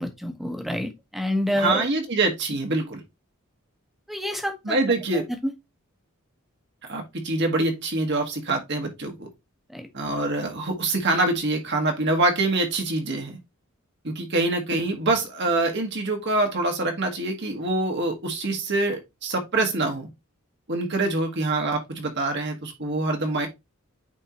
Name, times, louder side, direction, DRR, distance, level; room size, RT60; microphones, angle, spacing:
voice 1, 0.0-1.8 4.1-4.8 5.1-5.5 9.7-9.9, left 1 dB, ahead, 1.0 m, -28 dB
voice 2, 1.5-3.0 4.6-5.3 6.8-9.3 9.9-13.4 14.0-20.1 20.7-23.5, right 2 dB, 55° right, 1.5 m, -25 dB
8.9 x 3.7 x 3.0 m
head